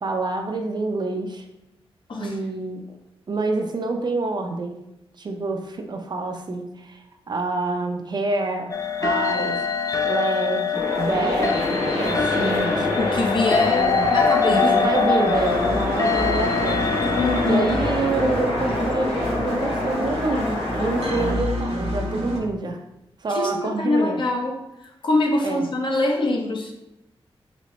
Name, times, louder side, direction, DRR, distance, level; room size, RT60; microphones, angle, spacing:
voice 1, 0.0-1.4 2.2-3.0 3.3-4.8 5.2-11.7 11.9-12.9 13.6-14.1 14.5-16.9 17.4-22.8 23.2-24.2 25.4-25.6, right 3 dB, 45° right, 4 dB, 0.5 m, -27 dB
sound 1, 8.7-17.8, left 6 dB, 35° left, 0.4 m, -25 dB
sound 2, 10.7-21.3, left 2 dB, 75° left, 1.4 m, -24 dB
voice 2, 13.0-14.9 17.2-17.6 23.3-26.7, left 2 dB, 55° left, 1 dB, 0.8 m, -24 dB
sound 3, 15.3-22.4, equal, 80° right, 1.0 m, -30 dB
4.1 x 3.1 x 3.1 m, 0.89 s
wide cardioid pair, 100°, 10 cm